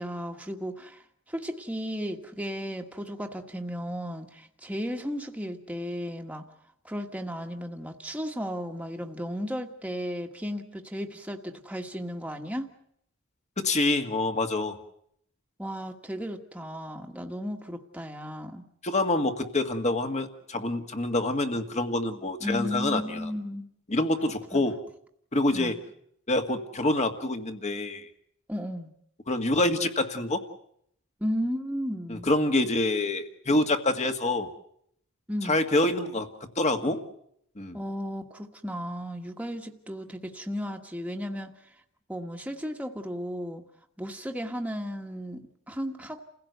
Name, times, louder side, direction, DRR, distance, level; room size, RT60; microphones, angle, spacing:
voice 1, 0.0-6.5 6.8-12.7 15.6-18.7 22.4-23.7 24.5-24.6 25.5-25.8 28.5-28.9 31.2-32.3 35.3-35.6 37.7-41.5 42.1-43.6 44.0-46.2, equal, 5° right, 3 dB, 1.5 m, -34 dB
voice 2, 13.6-14.8 18.8-23.0 23.9-24.8 25.3-25.8 26.3-28.1 29.3-30.4 32.1-34.5 35.4-36.3 36.6-37.0 37.6-37.8, left 2 dB, 35° left, 6 dB, 1.9 m, -26 dB
29.5 x 16.5 x 8.1 m, 0.71 s
head